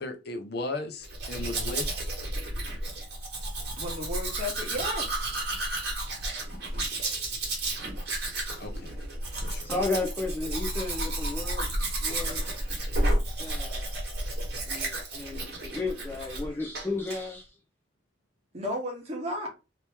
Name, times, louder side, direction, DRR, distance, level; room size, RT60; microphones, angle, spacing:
voice 1, 0.0-1.9 8.6-8.9 9.4-9.6, left 2 dB, 55° left, 0.6 m, -36 dB
Domestic sounds home sounds, 1.0-16.5 16.7-17.2, right 1 dB, 55° right, 1.4 m, -32 dB
voice 2, 3.8-5.1 18.5-19.5, left 1 dB, 30° right, 1.2 m, -33 dB
voice 3, 9.6-11.7 12.0-12.4 13.4-13.9 14.7-17.5, left 3 dB, 10° left, 0.6 m, -33 dB
2.9 x 2.9 x 3.4 m
head